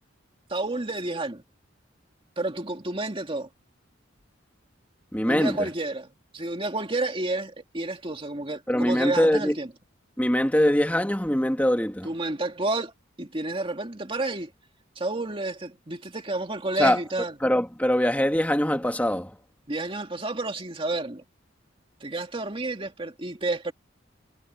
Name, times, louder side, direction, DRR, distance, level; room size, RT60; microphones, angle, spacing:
voice 1, 0.5-1.4 2.4-3.5 5.3-6.1 6.3-9.7 12.0-12.9 13.2-14.5 15.0-17.3 19.7-21.2 22.0-23.7, right 2 dB, 25° right, 2.2 m, -30 dB
voice 2, 5.1-5.7 8.7-9.6 10.2-12.1 16.8-17.0 17.4-19.4, left 1 dB, 10° left, 2.1 m, -23 dB
head